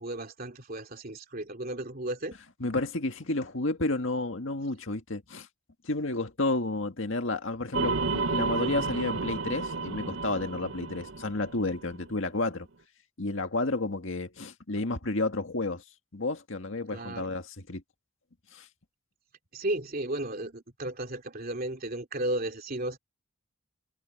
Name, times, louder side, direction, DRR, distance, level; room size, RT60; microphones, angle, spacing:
voice 1, 0.0-2.4 16.9-17.3 19.5-23.0, right 1 dB, 45° right, 3.0 m, -34 dB
voice 2, 2.6-5.5 5.8-12.7 13.2-15.8 16.1-17.8 18.5-18.7, left 2 dB, 65° left, 2.0 m, -31 dB
sound 1, 7.7-12.2, right 3 dB, 75° right, 0.9 m, -32 dB
head